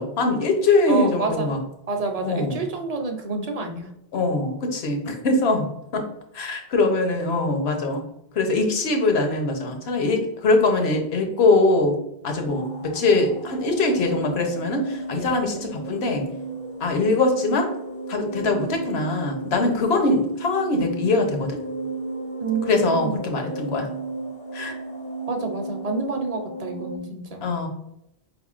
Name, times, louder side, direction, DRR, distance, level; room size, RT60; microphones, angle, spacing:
voice 1, 0.0-1.6 2.2-2.6 4.1-6.0 6.3-8.0 8.3-12.0 12.2-16.2 16.8-17.7 18.1-21.6 22.7-23.9 24.5-24.8 27.4-27.7, left 2 dB, 90° left, 4 dB, 1.0 m, -22 dB
voice 2, 0.9-1.5 1.9-3.9 22.4-23.2 25.3-27.4, right 3 dB, 45° right, 4 dB, 0.6 m, -28 dB
sound 1, 12.5-27.0, right 3 dB, 15° left, 0.3 m, -34 dB
5.0 x 3.4 x 2.4 m, 0.82 s
omnidirectional pair, 1.0 m